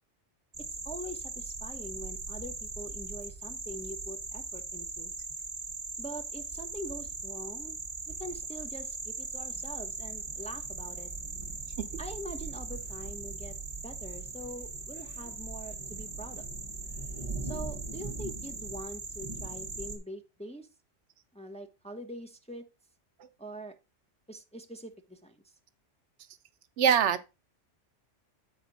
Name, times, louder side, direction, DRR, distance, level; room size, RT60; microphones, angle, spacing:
sound 1, 0.5-20.0, right 3 dB, 25° right, 1.2 m, -39 dB
voice 1, 0.6-5.1 6.0-7.8 8.1-11.1 12.0-16.5 17.4-20.7 21.3-22.6 23.4-23.8 24.3-25.4, right 1 dB, 5° left, 0.7 m, -44 dB
voice 2, 26.8-27.2, right 8 dB, 75° right, 0.9 m, -23 dB
8.1 x 5.0 x 4.0 m
omnidirectional pair, 1.2 m